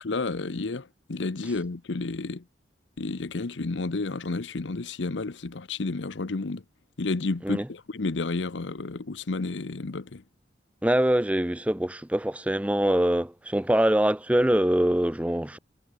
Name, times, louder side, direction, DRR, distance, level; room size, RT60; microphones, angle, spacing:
voice 1, 0.0-2.4 3.0-6.6 7.0-10.2, left 3 dB, 85° left, 0.8 m, -31 dB
voice 2, 10.8-15.6, right 1 dB, 5° right, 0.4 m, -24 dB
head